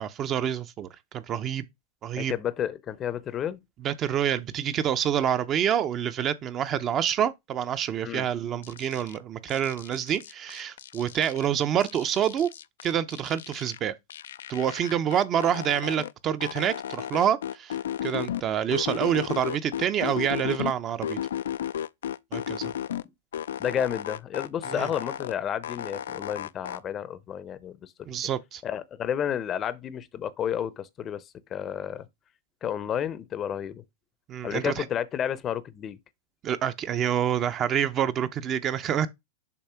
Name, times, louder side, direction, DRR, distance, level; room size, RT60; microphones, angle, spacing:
voice 1, 0.0-1.6 2.0-2.3 3.8-12.5 12.8-13.9 14.5-21.2 22.3-22.7 24.7-24.9 28.0-28.6 34.3-34.8 36.4-39.1, right 9 dB, 35° right, 0.6 m, -27 dB
voice 2, 2.2-3.6 8.0-8.3 23.6-27.9 28.6-31.2 31.5-32.1 32.6-33.8 34.4-36.0, left 9 dB, 30° left, 0.6 m, -31 dB
sound 1, 8.6-9.2 9.5-11.5 11.8-13.8 14.1-16.1 16.4-18.4 18.7-20.7 21.0-23.0 23.3-25.3 25.6-26.8, left 10 dB, 85° left, 0.3 m, -34 dB
6.9 x 2.6 x 5.7 m
hypercardioid pair, 125°, 0 cm